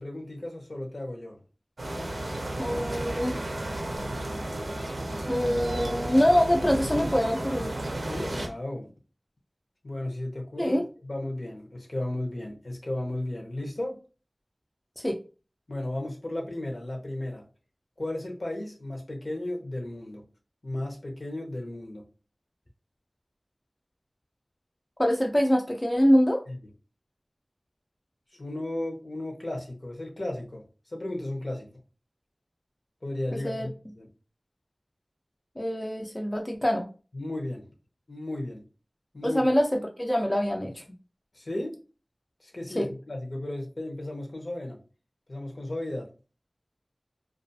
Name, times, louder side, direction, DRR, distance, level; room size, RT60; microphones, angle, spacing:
voice 1, 0.0-1.4 8.1-8.9 9.8-14.0 15.7-17.4 18.0-20.2 20.6-22.0 26.5-26.6 28.4-31.7 33.0-34.1 37.1-37.6 38.1-38.6 39.1-39.5 41.3-41.8 42.4-44.8 45.3-46.1, left 1 dB, 70° left, 0.8 m, -34 dB
sound 1, 1.8-8.5, right 1 dB, 85° right, 0.5 m, -33 dB
voice 2, 2.6-3.4 5.3-7.8 10.6-10.8 15.0-15.2 25.0-26.4 33.3-33.7 35.6-36.8 39.2-40.8 42.8-42.9, equal, 25° left, 0.4 m, -24 dB
2.3 x 2.3 x 2.6 m
wide cardioid pair, 50°, 0 cm